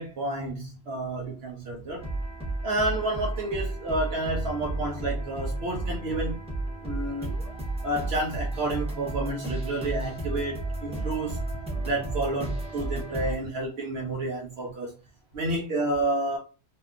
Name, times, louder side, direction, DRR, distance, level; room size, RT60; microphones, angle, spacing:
voice 1, 0.0-2.0 2.6-6.4 6.8-7.3 7.8-11.4 11.8-14.9 15.3-16.4, right 2 dB, 65° right, 0.8 m, -30 dB
sound 1, 2.0-13.4, right 2 dB, 5° right, 0.7 m, -33 dB
2.6 x 2.3 x 2.4 m
omnidirectional pair, 1.2 m